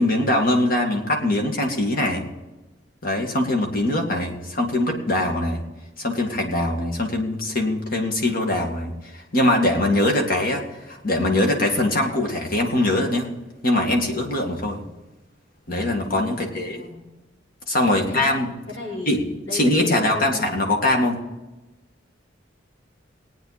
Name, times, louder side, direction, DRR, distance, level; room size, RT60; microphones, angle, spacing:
voice 1, 0.0-2.2 3.0-5.6 6.0-13.3 13.6-14.8 15.7-16.8 17.7-18.5 19.1-19.2 19.5-21.2, left 1 dB, 50° left, 2 dB, 2.1 m, -22 dB
voice 2, 16.3-17.0 17.9-18.3 18.7-20.5, left 2 dB, 90° left, -5 dB, 5.4 m, -36 dB
20.0 x 9.2 x 4.2 m, 1.1 s
head